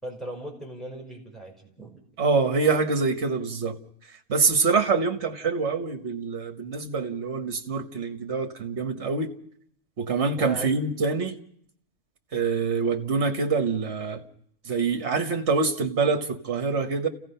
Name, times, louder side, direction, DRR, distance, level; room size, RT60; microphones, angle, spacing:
voice 1, 0.0-2.0 10.4-10.7, right 1 dB, ahead, 5.5 m, -37 dB
voice 2, 2.2-3.8 4.3-9.3 10.0-11.4 12.3-14.2 14.7-17.1, right 4 dB, 50° right, 1.6 m, -25 dB
29.0 x 16.5 x 5.7 m
omnidirectional pair, 1.5 m